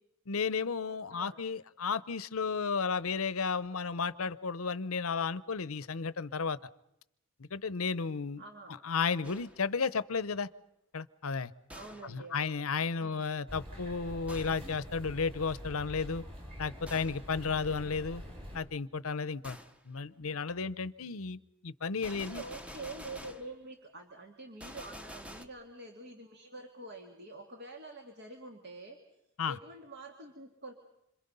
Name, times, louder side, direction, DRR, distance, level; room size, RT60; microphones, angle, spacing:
voice 1, 0.3-6.6 7.4-8.4 8.8-10.5 10.9-11.5 12.0-16.2 16.6-18.2 18.5-19.6 19.9-22.4 29.4-29.6, left 5 dB, 85° left, 16 dB, 0.8 m, -33 dB
voice 2, 8.4-8.8 11.7-12.6 13.0-13.3 22.1-29.0 29.5-30.7, right 2 dB, 50° right, 3 dB, 2.2 m, -47 dB
Gunshot gunfire, 9.2-9.7 11.7-12.2 14.3-14.8 16.9-17.3 19.4-19.8 22.0-23.6 24.6-25.4, equal, 5° right, 1.0 m, -48 dB
sound 1, 13.5-18.6, equal, 25° right, 6.5 m, -45 dB
27.0 x 26.5 x 5.5 m, 0.81 s
head